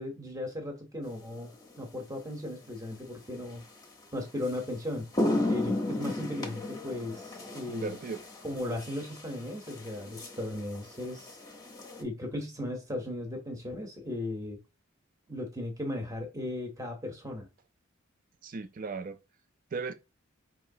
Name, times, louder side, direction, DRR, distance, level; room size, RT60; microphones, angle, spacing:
voice 1, 0.0-1.5 1.8-3.6 4.1-5.1 5.5-7.9 8.4-11.4 12.0-14.6 15.3-17.5, left 1 dB, 15° right, 0.8 m, -36 dB
sound 1, 1.4-1.7 3.8-3.9 4.4-4.6 4.9-12.0, left 1 dB, 20° left, 0.7 m, -34 dB
voice 2, 7.7-8.2 18.4-19.2 19.7-19.9, right 4 dB, 40° right, 0.4 m, -36 dB
4.7 x 2.9 x 2.7 m
head